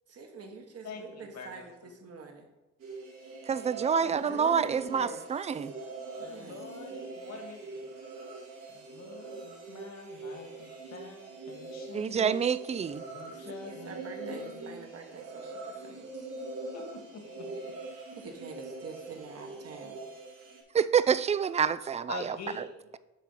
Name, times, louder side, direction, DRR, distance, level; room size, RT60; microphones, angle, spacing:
voice 1, 0.1-2.5 4.0-5.2 6.2-6.7 13.3-16.3 18.1-20.0, right 4 dB, 55° right, 3 dB, 1.6 m, -46 dB
voice 2, 0.8-1.9 6.2-7.9 8.7-12.2 13.1-14.9 16.7-17.8 22.1-22.8, left 4 dB, 60° left, 3 dB, 1.9 m, -46 dB
sound 1, 2.8-20.6, right 3 dB, 75° right, 2.7 m, -43 dB
voice 3, 3.5-5.7 11.9-13.0 20.7-22.4, right 7 dB, 25° right, 15 dB, 0.3 m, -27 dB
9.1 x 3.8 x 5.8 m, 1.1 s
cardioid pair, 90°, 30 cm